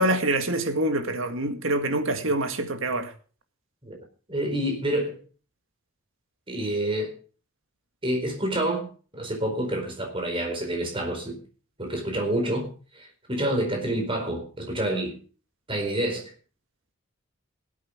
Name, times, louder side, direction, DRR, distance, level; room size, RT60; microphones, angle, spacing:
voice 1, 0.0-3.1, right 1 dB, 65° right, 2.0 m, -25 dB
voice 2, 4.3-5.2 6.5-7.1 8.0-8.9 9.1-11.4 11.8-15.2 15.7-16.3, right 1 dB, 25° right, 4.4 m, -28 dB
19.0 x 8.5 x 5.1 m
head